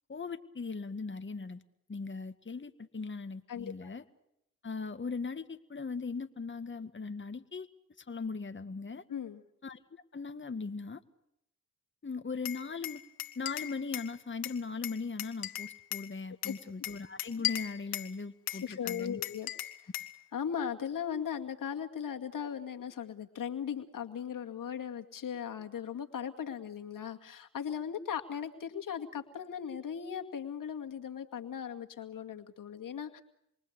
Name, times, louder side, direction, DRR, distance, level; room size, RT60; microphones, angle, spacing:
voice 1, 0.1-1.6 1.9-4.0 4.6-7.7 8.0-9.0 9.6-9.8 10.1-11.0 12.0-13.0 13.4-19.2, left 4 dB, 35° left, 9 dB, 1.9 m, -39 dB
voice 2, 3.5-3.9 9.1-9.4 16.5-16.6 18.5-19.5 20.3-33.2, left 8 dB, 70° left, 5 dB, 2.3 m, -38 dB
Glass, 12.5-14.1 14.4-16.1 16.4-18.1 18.5-20.1, left 14 dB, 90° left, 1.6 m, -37 dB
28.5 x 24.0 x 8.2 m, 0.79 s
supercardioid pair, 45°, 34 cm